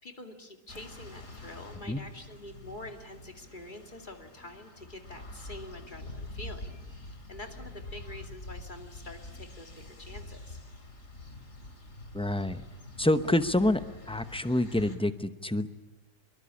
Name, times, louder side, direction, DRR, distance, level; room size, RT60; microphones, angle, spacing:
voice 1, 0.0-10.6, left 1 dB, 30° left, 4 dB, 2.5 m, -46 dB
sound 1, 0.7-15.0, left 2 dB, 50° left, 3.3 m, -46 dB
voice 2, 12.1-12.6 13.0-13.8 14.1-15.7, left 1 dB, 5° left, 11 dB, 0.4 m, -27 dB
25.0 x 22.5 x 8.6 m, 1.0 s
omnidirectional pair, 1.8 m